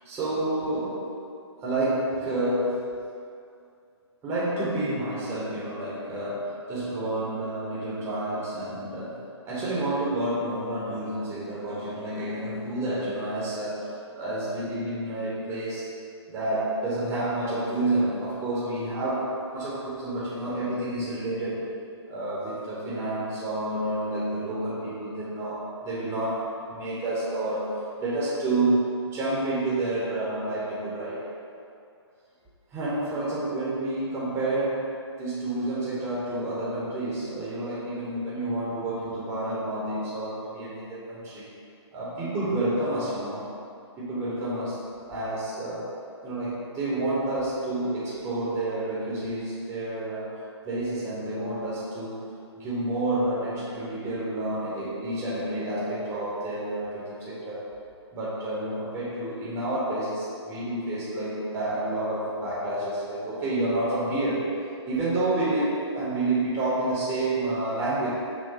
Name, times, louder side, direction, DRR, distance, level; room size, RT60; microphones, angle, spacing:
voice 1, 0.0-1.1 1.6-2.9 4.2-9.2 9.5-15.9 16.3-21.7 22.1-31.2 32.7-34.9 35.2-41.5 41.9-43.4 44.0-44.8 45.1-45.9 46.2-52.2 52.6-57.6 58.1-64.5 64.8-68.1, right 1 dB, 15° right, -8 dB, 0.8 m, -29 dB
5.9 x 2.2 x 2.8 m, 2.4 s
figure-of-eight pair, 135°, 15 cm